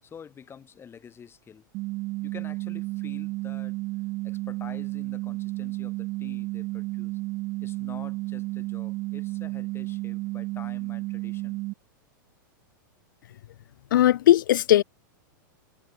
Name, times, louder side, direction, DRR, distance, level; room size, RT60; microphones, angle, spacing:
voice 1, 0.0-1.7 2.2-3.8 4.2-7.2 7.6-11.6, left 7 dB, 20° left, 7.5 m, -47 dB
sound 1, 1.7-11.7, right 22 dB, 45° right, 3.5 m, -32 dB
voice 2, 13.9-14.8, left 13 dB, 75° left, 1.1 m, -18 dB
hypercardioid pair, 115°, 11 cm